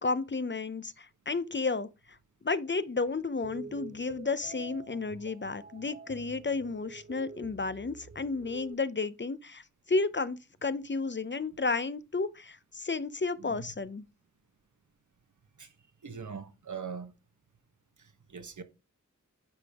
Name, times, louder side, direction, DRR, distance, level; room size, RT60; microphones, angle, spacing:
voice 1, 0.0-2.2 2.4-14.0, left 3 dB, 40° left, 0.6 m, -32 dB
sound 1, 3.4-8.7, right 4 dB, 40° right, 0.8 m, -47 dB
voice 2, 13.4-13.7 15.6-15.7 16.0-17.1 18.0-18.6, right 6 dB, 75° right, 1.3 m, -42 dB
9.5 x 5.1 x 3.5 m
wide cardioid pair, 50°, 30 cm